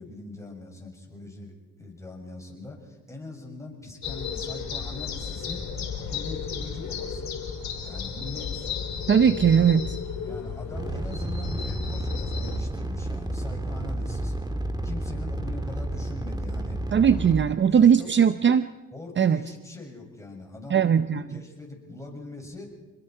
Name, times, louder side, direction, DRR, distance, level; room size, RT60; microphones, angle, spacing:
voice 1, 0.0-5.6 6.0-7.3 7.8-8.7 9.5-9.7 10.2-14.3 14.8-17.4 17.6-18.3 18.9-22.7, left 2 dB, 10° left, 0 dB, 6.8 m, -41 dB
sound 1, 4.0-12.6, left 6 dB, 65° left, 4.2 m, -34 dB
voice 2, 9.1-10.0 16.9-18.7 19.2-19.4 20.7-21.2, right 8 dB, 40° right, 12 dB, 0.7 m, -19 dB
sound 2, 10.7-17.6, right 1 dB, 15° right, 1.7 m, -31 dB
27.0 x 21.5 x 4.5 m, 1.1 s
cardioid pair, 90°, 30 cm